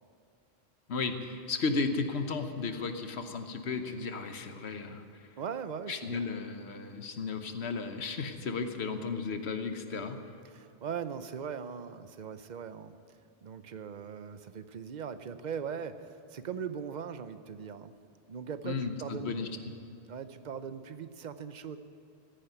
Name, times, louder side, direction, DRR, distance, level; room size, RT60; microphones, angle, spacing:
voice 1, 0.9-5.0 5.9-10.2 18.6-19.5, left 4 dB, 85° left, 8 dB, 1.3 m, -34 dB
voice 2, 5.4-6.3 10.4-17.9 18.3-19.4 20.1-21.8, right 7 dB, 50° right, 11 dB, 0.8 m, -40 dB
15.5 x 10.0 x 9.1 m, 2.6 s
omnidirectional pair, 1.1 m